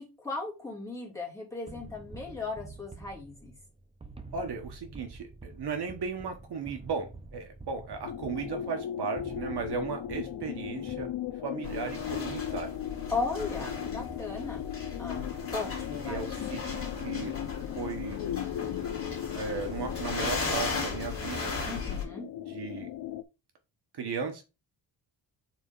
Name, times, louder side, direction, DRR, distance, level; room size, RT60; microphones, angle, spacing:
voice 1, 0.0-3.5 13.1-14.6 15.0-16.3 21.6-22.3, left 3 dB, 5° left, 3.1 m, -36 dB
sound 1, 1.7-11.6, right 3 dB, 15° right, 0.6 m, -48 dB
voice 2, 4.3-11.1 11.4-12.7 16.1-16.6 17.0-17.3 17.7-18.2 19.3-21.8 22.5-22.9 23.9-24.4, right 5 dB, 60° right, 1.3 m, -36 dB
sound 2, 8.0-23.2, left 11 dB, 70° left, 0.6 m, -37 dB
sound 3, 11.6-22.0, left 4 dB, 30° left, 2.6 m, -37 dB
4.6 x 4.2 x 5.4 m
wide cardioid pair, 145°, 44 cm